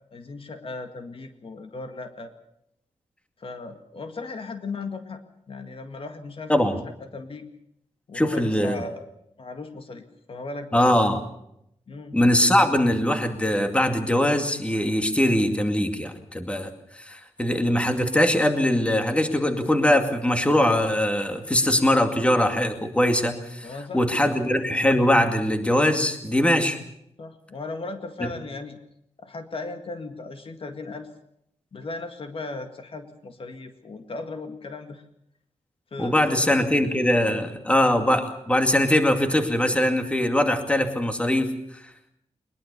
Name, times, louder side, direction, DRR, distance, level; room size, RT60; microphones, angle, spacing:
voice 1, 0.1-2.3 3.4-5.2 5.5-7.5 8.1-9.1 9.4-11.1 11.9-12.2 23.6-24.4 27.2-28.8 29.2-31.1 31.7-35.0 35.9-36.5 36.9-37.4, left 3 dB, 50° left, 7 dB, 1.9 m, -37 dB
voice 2, 8.1-8.8 10.7-11.2 12.1-23.7 23.9-26.8 36.0-41.8, left 1 dB, 10° left, 6 dB, 2.3 m, -22 dB
22.0 x 21.5 x 6.8 m, 0.75 s
wide cardioid pair, 150°, 12 cm